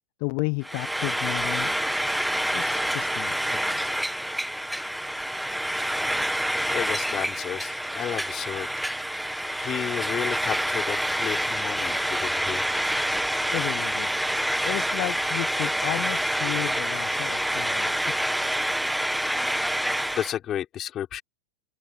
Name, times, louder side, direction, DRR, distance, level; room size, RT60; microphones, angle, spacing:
voice 1, 0.2-1.8 2.5-3.9 13.5-18.5, left 40 dB or more, 45° left, 1.4 m, -33 dB
Frying (food), 0.6-20.4, equal, ahead, 1.5 m, -27 dB
voice 2, 6.7-8.9 9.6-12.6 20.1-21.2, left 11 dB, 30° left, 5.1 m, -32 dB
figure-of-eight pair, 90°, 0 cm